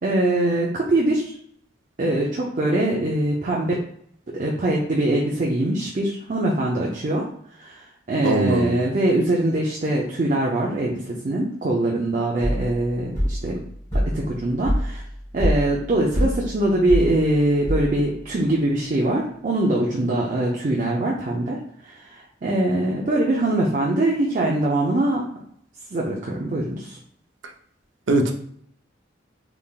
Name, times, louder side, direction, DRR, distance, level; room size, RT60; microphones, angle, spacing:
voice 1, 0.0-1.4 2.0-3.8 4.3-7.3 7.6-13.6 14.1-15.0 15.3-25.2 25.9-27.0, right 1 dB, 40° right, -3 dB, 0.5 m, -23 dB
voice 2, 8.2-8.8 28.1-28.3, right 2 dB, 90° right, 5 dB, 0.6 m, -20 dB
sound 1, 12.4-18.2, equal, 15° left, 1.4 m, -26 dB
3.7 x 3.4 x 2.3 m, 0.66 s
head